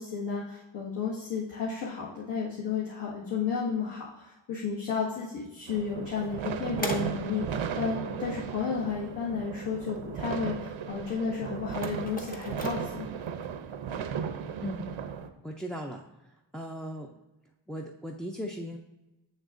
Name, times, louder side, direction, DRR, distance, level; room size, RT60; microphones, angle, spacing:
voice 1, 0.0-13.2, left 6 dB, 65° left, -8 dB, 1.7 m, -33 dB
sound 1, 5.7-15.3, right 7 dB, 90° right, 0.7 m, -36 dB
sound 2, 6.0-13.5, equal, 20° left, 0.7 m, -43 dB
voice 2, 15.4-16.0 16.5-17.1 17.7-18.8, equal, ahead, 0 dB, 0.3 m, -37 dB
7.2 x 6.4 x 2.5 m, 1.0 s
wide cardioid pair, 125°, 46 cm